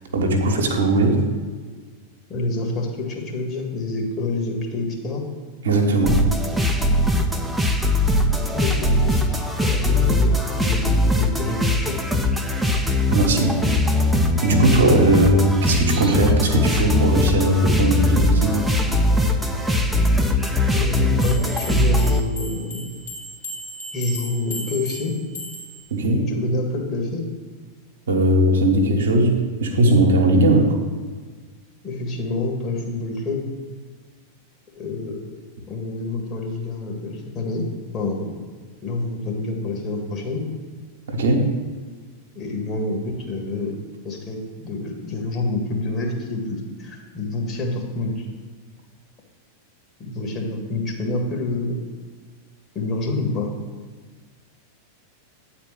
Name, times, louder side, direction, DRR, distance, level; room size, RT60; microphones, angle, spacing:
voice 1, 0.1-1.3 5.6-6.2 13.1-13.6 14.4-18.6 25.9-26.3 28.1-30.8 41.1-41.5, right 1 dB, 65° right, 2 dB, 1.2 m, -18 dB
voice 2, 2.3-5.2 8.3-10.3 10.6-10.9 11.2-12.0 20.7-22.9 23.9-25.1 26.3-27.2 31.8-33.5 34.8-35.4 35.7-37.7 37.9-38.4 38.8-40.4 42.4-43.7 44.0-48.3 50.0-51.8 52.8-53.5, left 2 dB, 30° left, 0 dB, 1.8 m, -27 dB
sound 1, 6.1-22.2, left 1 dB, 5° right, 0.7 m, -20 dB
sound 2, 21.2-25.9, left 1 dB, 65° left, 2.7 m, -36 dB
9.1 x 4.4 x 7.3 m, 1.5 s
figure-of-eight pair, 90°, 0 cm